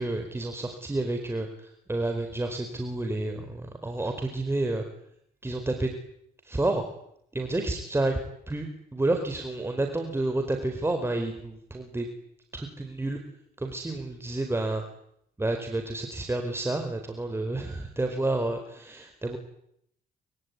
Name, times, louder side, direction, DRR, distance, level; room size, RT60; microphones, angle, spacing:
voice 1, 0.0-4.8 5.4-5.9 6.4-6.8 7.3-8.2 8.5-8.7 8.9-12.1 12.5-13.2 13.6-14.8 15.4-19.4, right 2 dB, 15° right, 5 dB, 4.6 m, -30 dB
25.0 x 24.5 x 9.6 m, 0.74 s
cardioid pair, 90°, 16 cm